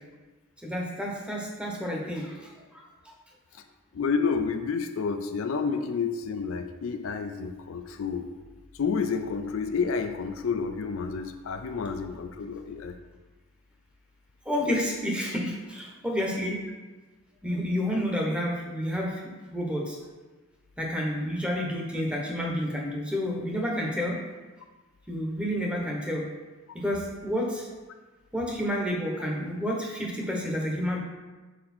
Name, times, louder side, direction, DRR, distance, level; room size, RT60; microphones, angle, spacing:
voice 1, 0.6-2.8 14.4-16.6 17.4-20.0 20.8-24.2 25.1-26.2 26.7-27.7 28.3-31.0, equal, 5° right, -1 dB, 0.9 m, -30 dB
voice 2, 3.9-8.3 8.7-13.0, left 5 dB, 70° left, 7 dB, 0.4 m, -30 dB
6.3 x 4.1 x 4.3 m, 1.3 s
head